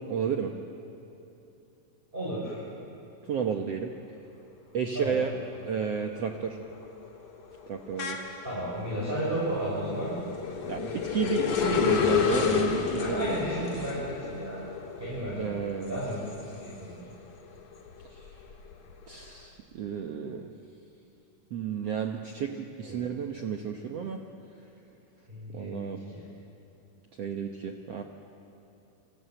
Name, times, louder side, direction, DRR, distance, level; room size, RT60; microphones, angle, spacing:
voice 1, 0.1-0.5 3.2-3.9 4.7-5.3 5.7-6.6 7.7-8.2 10.6-13.4 15.4-16.0 18.0-18.4 19.1-20.5 21.5-24.2 25.5-26.0 27.2-28.0, right 7 dB, 80° right, 4 dB, 1.4 m, -32 dB
voice 2, 2.1-2.6 4.9-5.2 8.4-10.1 13.0-14.6 15.0-15.5 15.9-16.9 22.8-23.0 25.3-26.2, right 1 dB, 10° right, -8 dB, 6.5 m, -33 dB
sound 1, 5.1-5.5 5.9-17.1 17.5-19.2, left 7 dB, 50° left, 2.9 m, -31 dB
28.5 x 24.0 x 8.0 m, 2.9 s
omnidirectional pair, 4.6 m